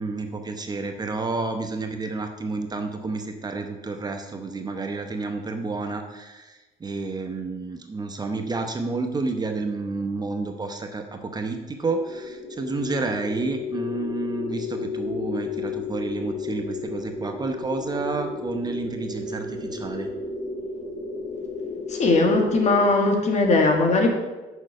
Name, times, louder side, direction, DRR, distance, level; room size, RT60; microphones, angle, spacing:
voice 1, 0.0-20.1, right 3 dB, 25° right, 5 dB, 0.9 m, -30 dB
sound 1, 11.9-22.9, left 3 dB, 20° left, 2.4 m, -33 dB
voice 2, 21.9-24.1, left 3 dB, 40° left, 3 dB, 1.8 m, -19 dB
6.5 x 6.0 x 6.5 m, 1.2 s
cardioid pair, 110°, 17 cm